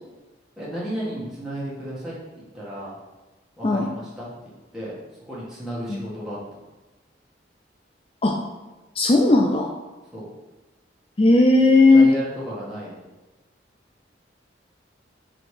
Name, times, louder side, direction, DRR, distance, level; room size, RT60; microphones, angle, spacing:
voice 1, 0.6-3.0 3.6-5.0 5.3-6.4 10.1-10.2 11.9-12.9, equal, 5° right, -9 dB, 1.6 m, -33 dB
voice 2, 9.0-9.7 11.2-12.1, left 2 dB, 30° left, 2 dB, 0.5 m, -16 dB
6.0 x 3.9 x 4.9 m, 1.1 s
head